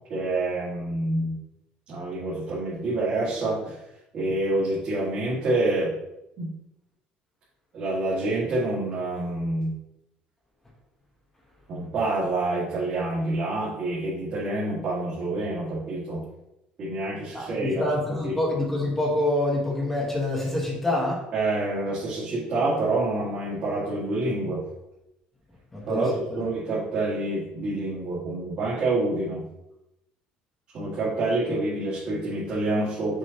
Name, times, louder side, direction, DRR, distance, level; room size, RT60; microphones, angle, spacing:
voice 1, 0.1-1.4 1.9-3.8 4.1-5.9 6.4-6.5 7.7-9.7 11.7-16.2 16.8-17.8 18.1-18.4 21.3-24.6 25.9-29.4 30.7-33.2, right 2 dB, 40° right, -9 dB, 2.0 m, -27 dB
voice 2, 17.3-21.2 25.7-26.0 26.3-26.4, left 1 dB, 10° left, -2 dB, 1.3 m, -26 dB
6.4 x 5.2 x 2.9 m, 0.88 s
cardioid pair, 165°, 3 cm